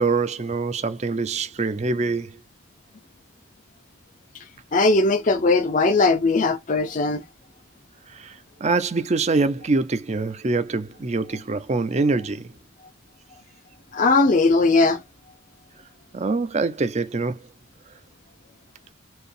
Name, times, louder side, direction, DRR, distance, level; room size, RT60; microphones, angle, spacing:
voice 1, 0.0-2.3 8.1-12.5 16.1-17.4, right 3 dB, 35° right, 0.5 m, -24 dB
voice 2, 4.7-7.2 13.9-15.0, left 3 dB, 40° left, 0.5 m, -19 dB
4.5 x 2.9 x 3.2 m
head